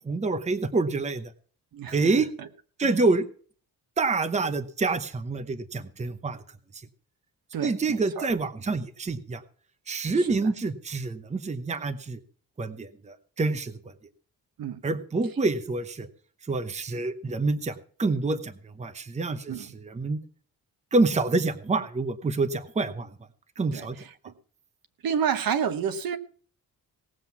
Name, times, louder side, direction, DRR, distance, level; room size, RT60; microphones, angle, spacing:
voice 1, 0.0-1.3 1.9-2.3 2.8-3.2 4.0-6.4 6.7-6.8 7.6-9.4 9.9-12.2 12.6-13.8 14.8-16.1 16.5-20.2 20.9-23.1 23.6-24.0, right 3 dB, 20° right, 10 dB, 0.9 m, -27 dB
voice 2, 1.7-2.5 2.8-2.9 7.5-8.3 10.2-10.4 14.6-14.8 19.5-19.7 23.7-24.3 25.0-26.2, right 7 dB, 65° right, 10 dB, 1.2 m, -30 dB
18.0 x 7.7 x 5.9 m, 0.44 s
wide cardioid pair, 165°, 37 cm